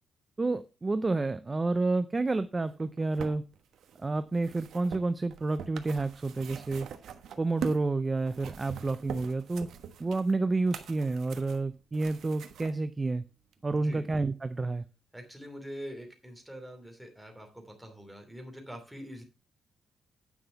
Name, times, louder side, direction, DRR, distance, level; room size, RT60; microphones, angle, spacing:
voice 1, 0.4-3.4 4.0-6.9 7.4-9.7 10.0-13.2 13.6-14.9, right 3 dB, 20° right, 13 dB, 0.5 m, -29 dB
sound 1, 2.7-7.9 8.2-12.7 13.5-13.6, right 8 dB, 80° right, 1.2 m, -43 dB
voice 2, 13.7-14.1 15.1-19.2, equal, 5° right, 3 dB, 2.8 m, -44 dB
9.7 x 5.9 x 5.6 m, 0.32 s
cardioid pair, 135°, 0 cm